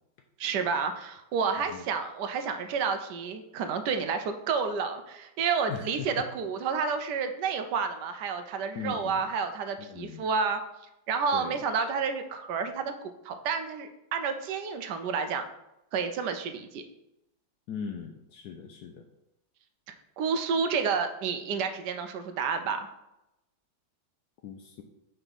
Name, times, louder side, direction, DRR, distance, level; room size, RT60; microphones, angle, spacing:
voice 1, 0.4-10.6 11.1-15.5 15.9-16.8 20.2-22.9, right 5 dB, 75° right, 7 dB, 1.0 m, -30 dB
voice 2, 5.7-6.3 8.7-9.3 9.8-10.3 11.3-11.6 17.7-19.1 24.4-24.8, left 6 dB, 75° left, 4 dB, 0.9 m, -39 dB
5.7 x 3.5 x 5.4 m, 0.88 s
omnidirectional pair, 2.2 m